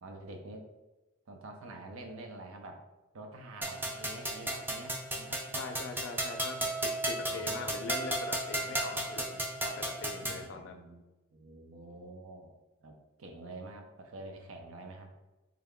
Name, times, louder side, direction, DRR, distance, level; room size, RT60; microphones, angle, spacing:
voice 1, 0.0-0.7 1.3-2.8 3.1-5.6 7.3-7.7 10.2-11.0 11.3-12.5 12.8-15.1, right 2 dB, 70° right, 4 dB, 0.5 m, -47 dB
sound 1, 3.6-10.4, right 1 dB, 10° right, 0.3 m, -34 dB
voice 2, 5.5-10.8, left 3 dB, 60° left, 5 dB, 0.4 m, -42 dB
3.5 x 2.2 x 3.5 m, 1.1 s
head